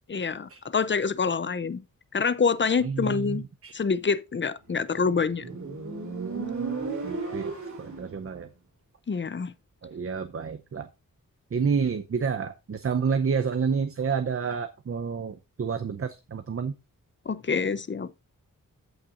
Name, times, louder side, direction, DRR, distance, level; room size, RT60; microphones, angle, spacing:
voice 1, 0.1-1.8 2.1-3.4 3.7-5.5 9.1-9.5 17.3-18.1, left 5 dB, 35° left, 0.6 m, -26 dB
voice 2, 2.8-3.7 7.0-7.5 7.8-8.5 9.8-10.9 11.5-16.7, right 6 dB, 40° right, 0.7 m, -29 dB
Motorcycle, 4.7-8.2, right 4 dB, 60° right, 2.9 m, -34 dB
15.0 x 5.8 x 2.5 m
wide cardioid pair, 125°, 34 cm